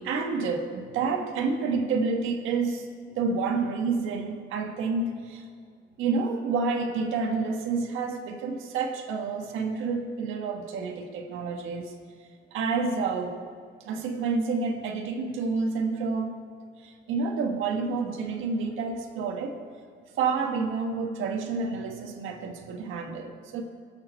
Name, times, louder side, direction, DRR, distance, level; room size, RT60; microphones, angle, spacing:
voice 1, 0.0-2.9 3.1-5.4 6.0-11.9 12.5-13.4 13.8-16.3 16.8-19.6 20.2-23.6, right 4 dB, 90° right, 3 dB, 1.5 m, -29 dB
22.5 x 7.5 x 4.6 m, 2.1 s
cardioid pair, 90°, 20 cm